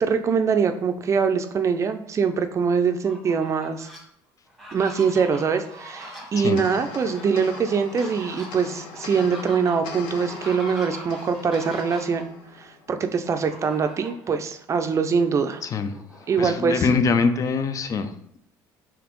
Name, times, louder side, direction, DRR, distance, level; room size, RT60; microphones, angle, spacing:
voice 1, 0.0-3.9 4.7-12.3 12.6-15.6 16.3-16.9, right 6 dB, 35° right, 7 dB, 0.4 m, -23 dB
Fowl, 2.9-4.0 4.5-12.2 13.2-14.3 14.7-14.8 15.2-16.9, right 1 dB, ahead, 1.1 m, -42 dB
sound 1, 6.6-13.2, left 5 dB, 75° left, 0.7 m, -41 dB
voice 2, 15.6-16.0 16.4-18.4, left 4 dB, 40° left, 9 dB, 0.4 m, -24 dB
4.0 x 2.9 x 3.0 m, 0.68 s
supercardioid pair, 90°, 9 cm